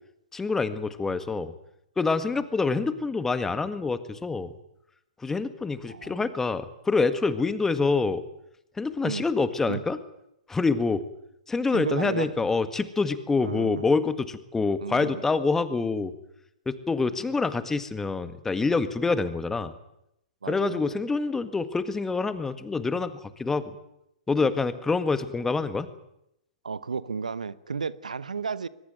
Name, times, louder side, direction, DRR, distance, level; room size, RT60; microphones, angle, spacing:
voice 1, 0.3-1.5 2.0-4.5 5.2-8.2 8.8-10.0 10.5-11.0 11.5-16.1 16.6-19.7 20.5-23.7 24.3-25.9, left 4 dB, 10° left, 1.8 m, -26 dB
voice 2, 5.9-6.3 9.0-9.3 9.7-9.8 11.7-12.5 13.4-13.8 14.8-15.2 16.0-16.1 20.4-20.8 22.9-23.1 24.4-24.5 26.6-28.7, right 5 dB, 85° right, 1.0 m, -33 dB
22.5 x 21.0 x 9.2 m
hypercardioid pair, 115°, 4 cm